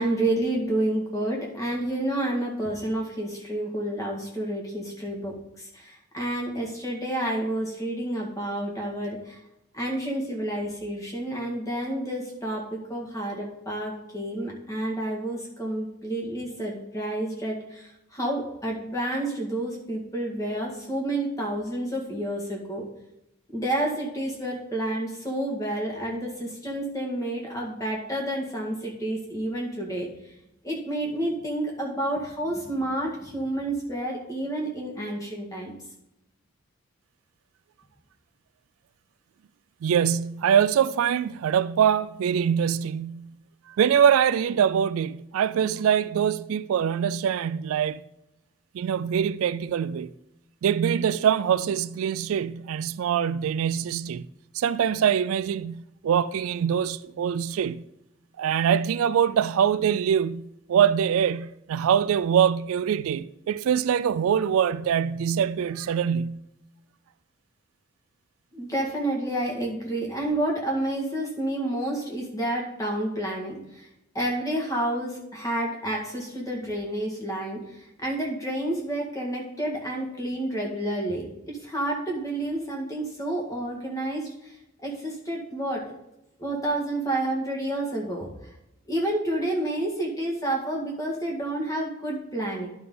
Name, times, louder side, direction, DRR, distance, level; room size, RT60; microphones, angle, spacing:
voice 1, 0.0-9.4 9.7-22.9 23.5-30.1 30.6-35.7 68.5-73.9 74.1-77.6 78.0-84.3 84.8-85.8 86.4-88.3 88.9-92.7, right 1 dB, 15° left, 1.9 m, -29 dB
voice 2, 39.8-43.3 43.8-48.0 48.7-50.1 50.6-54.2 54.5-57.8 58.4-66.4, right 8 dB, 80° right, 0.3 m, -24 dB
11.0 x 5.7 x 3.8 m
head